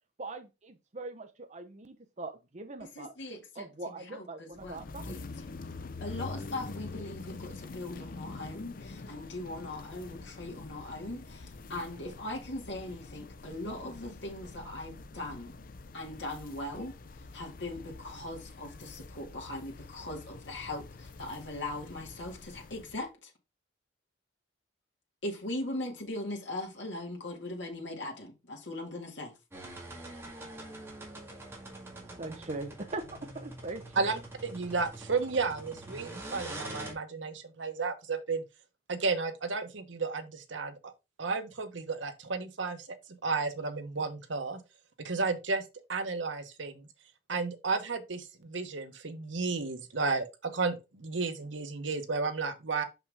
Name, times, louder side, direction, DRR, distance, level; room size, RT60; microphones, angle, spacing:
voice 1, 0.2-3.1 3.5-5.2 32.2-34.1, right 2 dB, 40° right, 0.9 m, -41 dB
voice 2, 3.0-3.6 4.1-5.2 6.0-15.5 15.9-16.9 17.3-23.3 25.2-29.3, left 1 dB, 75° left, 2.1 m, -40 dB
sound 1, 4.5-23.1, left 3 dB, 50° left, 0.5 m, -46 dB
sound 2, 29.5-36.9, right 1 dB, 15° right, 2.1 m, -44 dB
voice 3, 34.0-38.4 38.9-40.9 41.2-43.0 43.2-44.6 45.0-45.6 45.9-46.9 47.3-52.8, right 4 dB, 90° right, 1.1 m, -33 dB
6.0 x 5.7 x 3.6 m
head